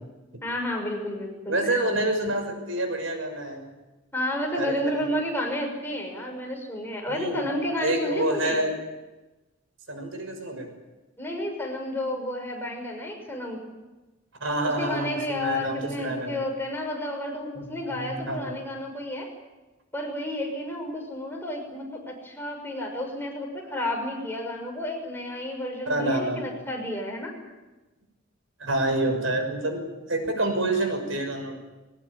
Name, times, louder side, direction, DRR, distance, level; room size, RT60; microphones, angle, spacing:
voice 1, 0.4-1.8 4.1-8.6 11.2-13.6 14.8-19.3 19.9-27.3, left 1 dB, 10° left, 1 dB, 6.0 m, -31 dB
voice 2, 1.5-3.7 4.6-5.1 7.1-7.4 7.8-8.8 9.9-10.7 14.4-16.4 17.6-18.5 25.9-26.5 28.6-29.8 30.1-31.6, right 1 dB, 80° right, 5 dB, 6.3 m, -27 dB
22.0 x 19.5 x 9.9 m, 1.1 s
head